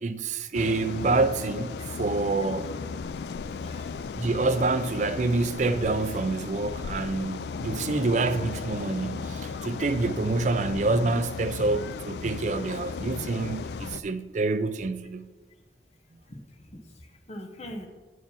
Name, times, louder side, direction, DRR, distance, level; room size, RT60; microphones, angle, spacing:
voice 1, 0.0-2.7 4.1-15.3, right 3 dB, 40° right, 0.4 m, -27 dB
sound 1, 0.5-14.0, left 5 dB, 65° left, 0.3 m, -36 dB
voice 2, 3.6-4.2 7.7-7.8 16.3-17.9, equal, 35° left, 0.9 m, -43 dB
9.0 x 4.8 x 7.0 m
head